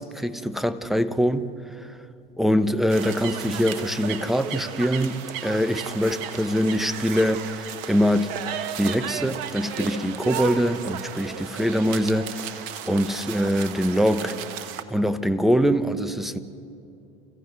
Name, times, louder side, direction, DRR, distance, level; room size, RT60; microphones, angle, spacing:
voice 1, 0.0-2.0 2.4-8.3 8.8-14.4 14.9-16.4, equal, ahead, 1.1 m, -24 dB
sound 1, 2.9-14.8, right 9 dB, 60° right, 1.4 m, -34 dB
29.0 x 15.0 x 9.4 m
hypercardioid pair, 75°, 29 cm